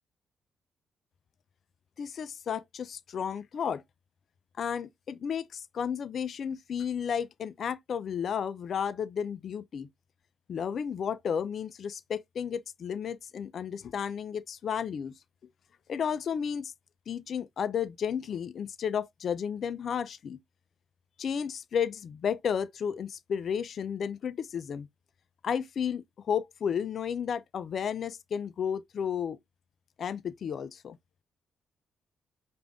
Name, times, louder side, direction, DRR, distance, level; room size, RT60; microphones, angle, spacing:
voice 1, 2.0-3.8 4.6-9.9 10.5-15.1 15.9-16.7 17.1-20.4 21.2-24.9 25.4-29.4 30.0-31.0, left 7 dB, 60° left, 0.4 m, -33 dB
5.0 x 2.5 x 3.5 m
supercardioid pair, 55°, 0 cm